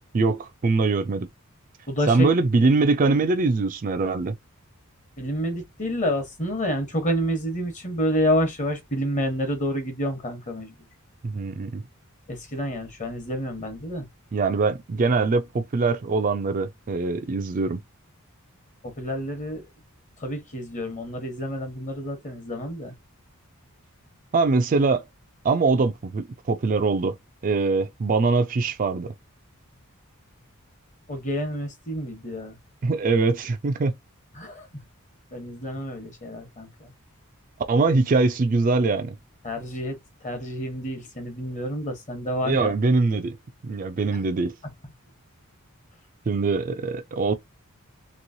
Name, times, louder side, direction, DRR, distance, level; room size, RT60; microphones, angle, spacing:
voice 1, 0.1-1.3 2.1-4.4 11.2-11.8 14.3-17.8 24.3-25.0 25.4-27.2 27.4-29.1 32.8-33.9 37.7-39.1 42.4-43.4 43.6-44.5 46.3-47.3, right 3 dB, 40° right, 0.4 m, -22 dB
voice 2, 1.9-2.3 5.2-10.7 12.3-14.1 18.8-19.7 20.2-22.9 31.1-32.6 34.3-34.8 35.3-36.9 39.4-40.0 40.2-42.7 44.6-44.7, equal, 35° left, 1.1 m, -29 dB
3.0 x 2.9 x 2.7 m
head